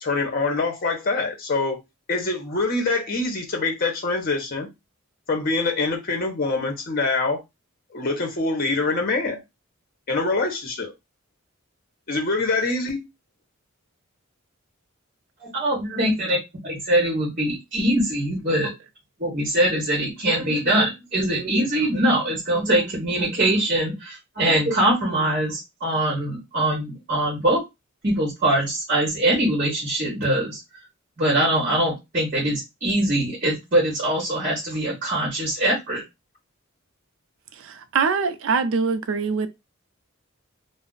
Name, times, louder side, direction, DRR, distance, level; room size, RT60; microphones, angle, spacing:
voice 1, 0.0-1.8 2.1-4.7 5.3-7.4 7.9-9.4 10.1-10.9 12.1-13.0, left 3 dB, 45° left, 0.7 m, -24 dB
voice 2, 15.4-16.4 16.6-18.7 19.2-27.6 28.0-30.6 31.2-36.0, right 1 dB, 40° right, 0.9 m, -23 dB
voice 3, 37.6-39.5, right 5 dB, 65° right, 0.4 m, -23 dB
2.4 x 2.0 x 3.7 m
head